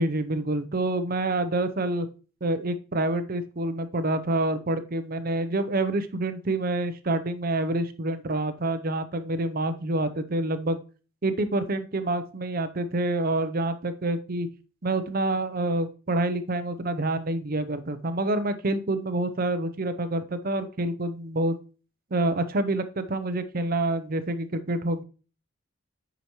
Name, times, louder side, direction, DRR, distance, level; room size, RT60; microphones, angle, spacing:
voice 1, 0.0-2.1 2.4-10.8 11.2-14.5 14.8-21.6 22.1-25.0, right 2 dB, 45° right, 10 dB, 0.7 m, -27 dB
8.2 x 5.0 x 3.0 m, 0.35 s
head